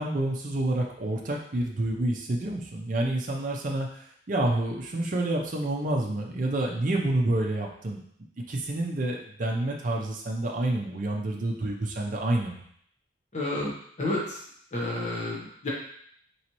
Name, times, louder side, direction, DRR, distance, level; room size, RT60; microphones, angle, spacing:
voice 1, 0.0-8.0 8.5-12.6, right 1 dB, 45° right, -1 dB, 0.6 m, -28 dB
voice 2, 13.3-14.4 14.7-15.7, left 2 dB, 40° left, -4 dB, 1.0 m, -31 dB
4.1 x 3.1 x 2.9 m, 0.65 s
head